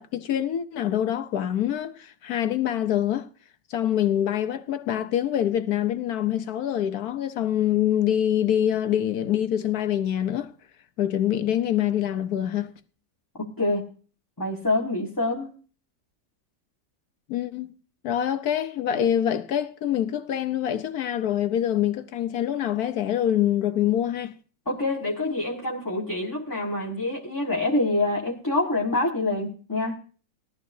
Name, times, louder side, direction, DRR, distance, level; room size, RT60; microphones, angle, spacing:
voice 1, 0.0-3.3 3.7-10.5 11.0-12.7 17.3-17.7 18.0-24.3, left 10 dB, 65° left, 1.2 m, -25 dB
voice 2, 13.4-13.8 14.4-15.5 24.7-29.9, left 2 dB, 10° left, 1.3 m, -26 dB
18.0 x 13.0 x 2.7 m
omnidirectional pair, 1.9 m